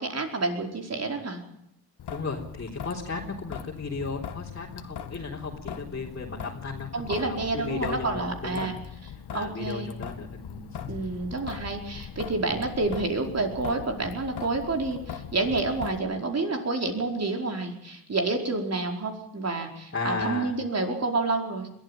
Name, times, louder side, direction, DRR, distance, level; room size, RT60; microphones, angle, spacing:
voice 1, 0.0-1.4 6.9-8.8 9.3-9.9 10.9-21.7, right 3 dB, 35° right, 3 dB, 4.9 m, -29 dB
Traffic noise roadway noise / Drip / Trickle dribble, 2.0-16.0, left 8 dB, 65° left, 2.1 m, -40 dB
voice 2, 2.1-8.7 9.3-11.0 12.5-12.6 19.9-20.5, left 4 dB, 30° left, -3 dB, 3.7 m, -35 dB
22.0 x 14.0 x 9.1 m, 0.79 s
cardioid pair, 90°, 42 cm